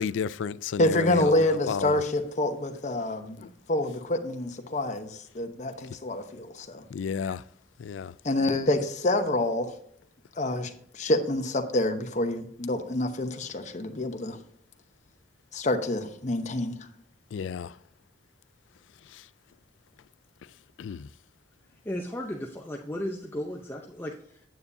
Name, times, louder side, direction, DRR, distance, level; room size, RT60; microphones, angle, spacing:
voice 1, 0.0-2.0 3.4-3.5 6.9-7.4 7.8-8.1 17.3-17.7 19.1-19.2 20.8-21.1, left 6 dB, 90° left, 0.3 m, -32 dB
voice 2, 0.8-6.8 8.2-9.7 10.4-14.4 15.5-16.8, left 1 dB, 40° left, 0.9 m, -27 dB
voice 3, 21.8-24.4, left 1 dB, 10° left, 0.6 m, -35 dB
9.3 x 8.3 x 2.7 m
head